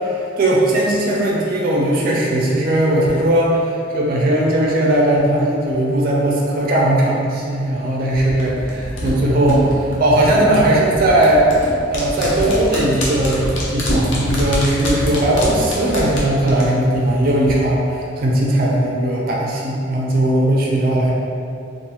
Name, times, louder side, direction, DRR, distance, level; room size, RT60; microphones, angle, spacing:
voice 1, 0.0-21.1, right 1 dB, 50° right, -3 dB, 0.4 m, -18 dB
sound 1, 8.1-17.5 17.8-17.9, equal, 75° left, 0.6 m, -25 dB
2.4 x 2.3 x 2.9 m, 2.6 s
head